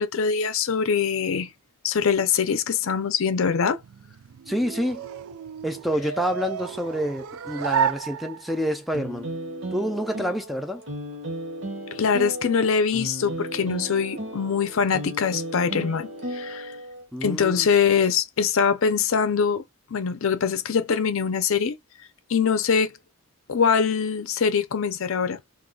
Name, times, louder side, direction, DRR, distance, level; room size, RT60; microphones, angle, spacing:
voice 1, 0.0-1.5 1.8-3.8 11.9-16.8 17.2-19.6 19.9-21.8 22.3-23.0 23.5-25.4, left 6 dB, 70° left, 0.5 m, -23 dB
sound 1, 3.7-8.8, right 7 dB, 85° right, 0.4 m, -31 dB
voice 2, 4.5-5.0 5.6-9.3 9.7-10.8 17.1-17.7, equal, ahead, 0.4 m, -28 dB
sound 2, 8.9-17.0, right 1 dB, 55° right, 0.9 m, -35 dB
2.5 x 2.3 x 3.7 m
head